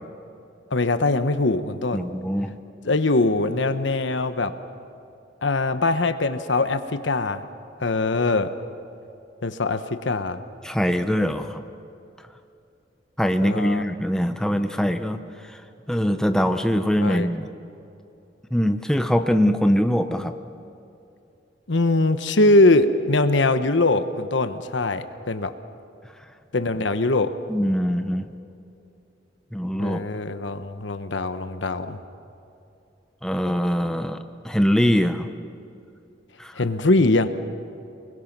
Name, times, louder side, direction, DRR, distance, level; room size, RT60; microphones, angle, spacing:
voice 1, 0.7-2.1 2.8-4.5 5.4-7.4 7.8-8.5 9.4-10.4 13.4-13.8 17.0-17.3 21.7-25.5 26.5-27.3 29.8-32.0 36.5-37.3, left 2 dB, 75° left, 10 dB, 1.1 m, -22 dB
voice 2, 1.9-2.5 10.6-11.6 13.2-15.2 15.9-17.5 18.5-20.3 27.5-28.3 29.5-30.0 33.2-34.2 34.4-35.3 36.4-36.7, equal, 5° left, 7 dB, 0.8 m, -22 dB
29.0 x 21.0 x 6.1 m, 2.7 s
head